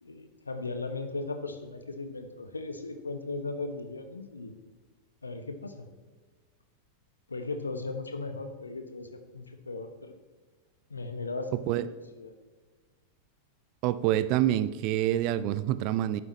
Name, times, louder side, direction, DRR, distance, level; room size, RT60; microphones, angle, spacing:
voice 1, 0.0-4.5 5.2-5.9 7.3-10.2 10.9-12.3, left 3 dB, 80° left, 8 dB, 0.9 m, -37 dB
voice 2, 11.5-11.9 13.8-16.2, right 13 dB, 45° right, 16 dB, 0.4 m, -27 dB
11.0 x 8.8 x 3.1 m, 1.4 s
figure-of-eight pair, 90°, 0 cm